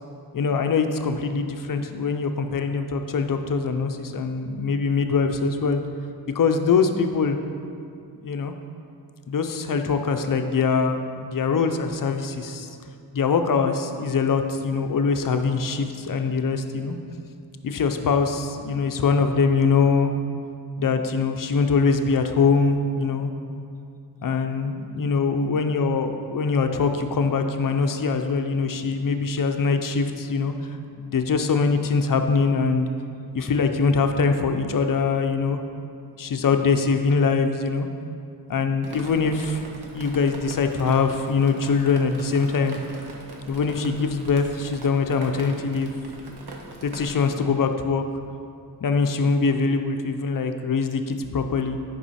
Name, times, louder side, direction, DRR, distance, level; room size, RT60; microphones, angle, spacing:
voice 1, 0.3-5.8 6.3-7.4 8.2-8.5 9.3-12.7 13.1-17.0 17.6-20.1 20.8-23.3 24.2-30.5 31.0-32.9 33.3-35.6 36.2-37.9 38.5-39.6 39.9-42.8 43.5-45.9 46.8-48.0 48.8-51.8, left 5 dB, 55° left, 7 dB, 0.6 m, -23 dB
Drip, 38.8-47.3, right 2 dB, 70° right, 1.1 m, -42 dB
10.5 x 5.4 x 4.2 m, 2.4 s
wide cardioid pair, 160°, 41 cm